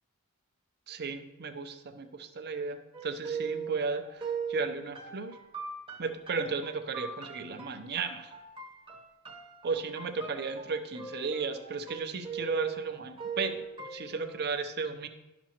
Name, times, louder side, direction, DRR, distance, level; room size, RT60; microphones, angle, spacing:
voice 1, 0.9-5.4 6.0-8.3 9.6-15.1, right 4 dB, 50° right, 7 dB, 0.6 m, -35 dB
sound 1, 2.9-14.5, right 6 dB, 25° right, 0.9 m, -40 dB
11.5 x 6.1 x 2.9 m, 1.0 s
head